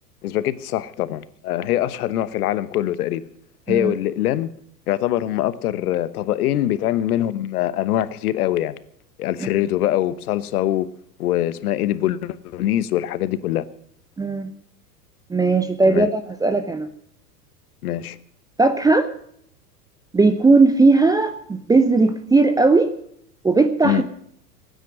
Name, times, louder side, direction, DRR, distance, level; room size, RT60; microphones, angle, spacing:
voice 1, 0.2-3.2 3.7-4.5 4.9-8.8 9.2-10.9 11.2-13.7 15.9-16.1 17.8-18.2 23.8-24.0, left 13 dB, 65° left, 16 dB, 1.2 m, -23 dB
voice 2, 14.2-14.5 15.3-16.9 18.6-19.1 20.1-22.9 23.4-24.0, right 3 dB, 10° right, 9 dB, 0.7 m, -17 dB
18.0 x 9.4 x 6.2 m, 0.67 s
hypercardioid pair, 95°, 49 cm